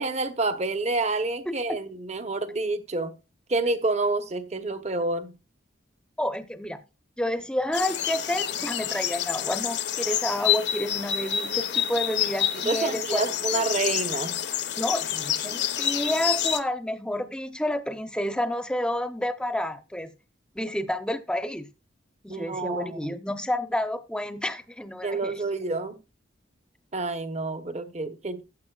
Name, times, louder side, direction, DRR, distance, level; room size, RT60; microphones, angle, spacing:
voice 1, 0.0-3.2 3.5-5.4 12.5-14.4 22.3-23.1 25.0-26.0 26.9-28.4, right 3 dB, 35° right, 1.1 m, -28 dB
voice 2, 1.5-1.8 6.2-6.8 7.2-13.2 14.8-20.1 20.5-21.7 22.2-25.4, left 1 dB, 5° left, 0.8 m, -30 dB
sound 1, 7.7-16.6, left 10 dB, 60° left, 0.9 m, -28 dB
14.5 x 9.4 x 2.4 m
head